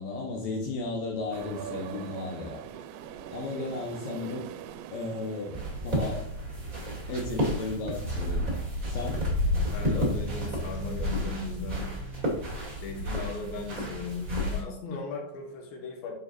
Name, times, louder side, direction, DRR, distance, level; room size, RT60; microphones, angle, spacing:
voice 1, 0.0-2.6 3.3-4.5 4.9-6.3 7.1-8.5 8.8-9.2, left 3 dB, 85° left, -1 dB, 2.0 m, -34 dB
sound 1, 1.3-7.9, right 10 dB, 85° right, 3.2 m, -43 dB
sound 2, 5.5-14.6, equal, 35° right, 1.3 m, -31 dB
voice 2, 9.4-11.8 12.8-16.1, left 3 dB, 60° left, 0 dB, 2.8 m, -37 dB
9.0 x 7.0 x 2.6 m, 0.67 s
omnidirectional pair, 5.8 m